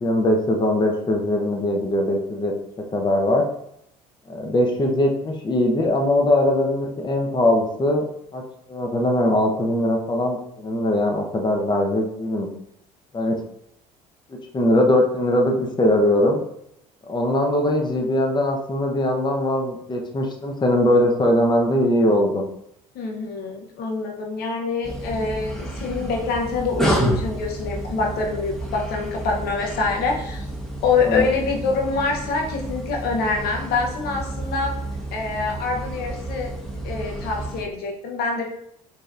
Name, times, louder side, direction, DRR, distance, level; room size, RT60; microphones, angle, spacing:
voice 1, 0.0-2.5 2.9-3.4 4.3-8.0 8.3-8.4 8.7-12.5 13.1-13.4 14.5-16.4 17.1-22.4 31.0-31.2, left 1 dB, 25° left, 1 dB, 0.8 m, -21 dB
voice 2, 22.9-30.5 30.8-34.7 35.1-36.5 36.8-38.4, left 4 dB, 60° left, 1 dB, 0.8 m, -25 dB
sound 1, 24.8-37.6, right 1 dB, ahead, 1.1 m, -30 dB
5.0 x 2.8 x 2.5 m, 0.76 s
hypercardioid pair, 65°, 18 cm